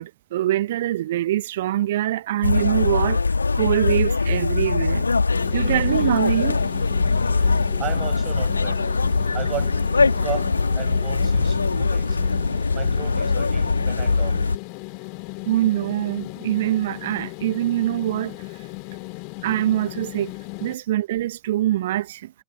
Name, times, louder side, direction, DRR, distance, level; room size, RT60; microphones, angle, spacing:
voice 1, 0.0-3.2 3.5-5.0 5.5-6.6 15.5-18.4 19.4-20.3 20.6-22.3, right 14 dB, 55° right, 1.0 m, -24 dB
sound 1, 2.4-14.6, left 4 dB, 80° left, 2.2 m, -22 dB
sound 2, 5.3-20.8, left 37 dB, 45° left, 2.8 m, -37 dB
voice 2, 7.8-8.8 9.3-9.8 10.2-10.5 10.8-12.2 12.7-14.4, right 12 dB, 30° right, 7.1 m, -34 dB
figure-of-eight pair, 90°, 0 cm